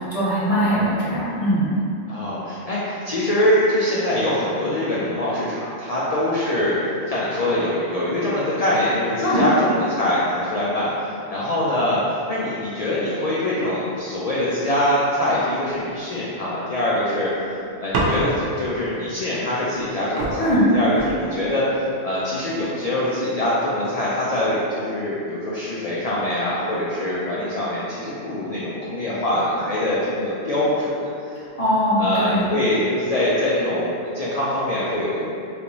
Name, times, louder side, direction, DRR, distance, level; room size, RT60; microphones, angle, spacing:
voice 1, 0.0-1.7 9.2-9.4 20.4-20.7 31.4-32.5, equal, 35° left, -9 dB, 0.7 m, -21 dB
voice 2, 2.1-6.8 7.1-17.3 17.8-31.1 32.0-35.2, left 1 dB, 85° left, -8 dB, 0.3 m, -23 dB
sound 1, 17.9-18.7 19.8-19.9 20.2-21.6 22.4-22.8, right 1 dB, 85° right, 0.9 m, -26 dB
3.3 x 2.5 x 2.9 m, 2.7 s
omnidirectional pair, 1.2 m